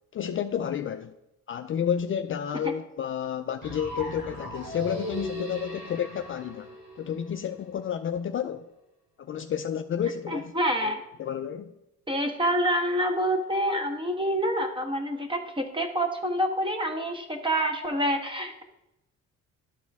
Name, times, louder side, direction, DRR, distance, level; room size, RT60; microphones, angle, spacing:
voice 1, 0.1-1.1 1.5-8.7 9.2-10.5 10.8-11.7, left 8 dB, 45° left, 0.4 m, -31 dB
sound 1, 3.6-7.6, equal, 65° right, 2.3 m, -38 dB
voice 2, 10.3-11.0 12.1-18.6, equal, 15° right, 1.3 m, -27 dB
12.5 x 4.3 x 3.5 m
cardioid pair, 90°, 30 cm